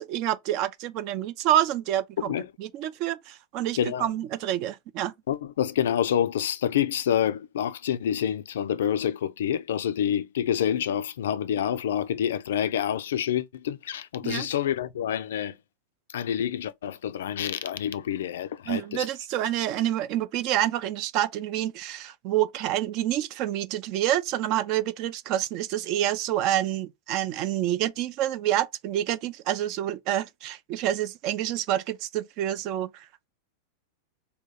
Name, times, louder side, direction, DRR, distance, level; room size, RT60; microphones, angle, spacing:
voice 1, 0.0-2.3 2.6-5.1 14.2-14.5 18.7-33.3, right 12 dB, 40° right, 0.4 m, -28 dB
voice 2, 3.8-4.1 5.3-15.5 16.1-19.1, left 9 dB, 60° left, 0.3 m, -27 dB
3.5 x 2.2 x 4.0 m
figure-of-eight pair, 90°, 0 cm